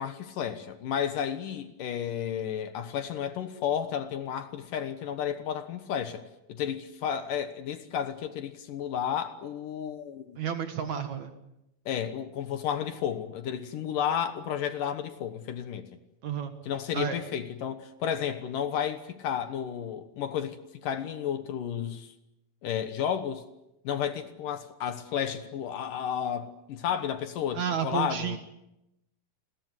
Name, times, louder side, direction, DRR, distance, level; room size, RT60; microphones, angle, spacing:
voice 1, 0.0-6.2 6.5-10.4 11.9-15.9 16.6-22.1 22.6-23.5 23.8-28.4, left 9 dB, 65° left, 2.6 m, -32 dB
voice 2, 10.4-11.3 16.2-16.5 16.9-17.2 27.5-28.4, right 8 dB, 55° right, 2.5 m, -31 dB
29.0 x 21.0 x 8.0 m
omnidirectional pair, 4.6 m